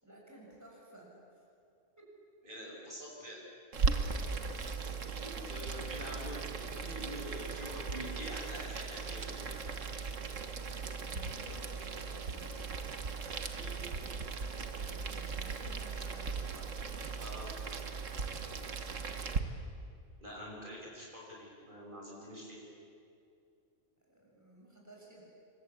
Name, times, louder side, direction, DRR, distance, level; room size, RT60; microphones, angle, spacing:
voice 1, 0.0-1.4 2.0-2.1 4.1-4.6 5.0-5.9 11.0-12.6 13.7-14.3 14.5-16.7 17.6-17.7 24.1-25.3, right 1 dB, 15° right, -3 dB, 6.6 m, -54 dB
voice 2, 2.4-3.4 5.5-9.6 13.4-13.7 17.2-17.5 20.2-22.6, equal, 40° right, -3 dB, 6.3 m, -46 dB
Boiling, 3.7-19.4, right 4 dB, 80° right, 1.8 m, -38 dB
27.5 x 23.5 x 8.5 m, 2.5 s
omnidirectional pair, 1.3 m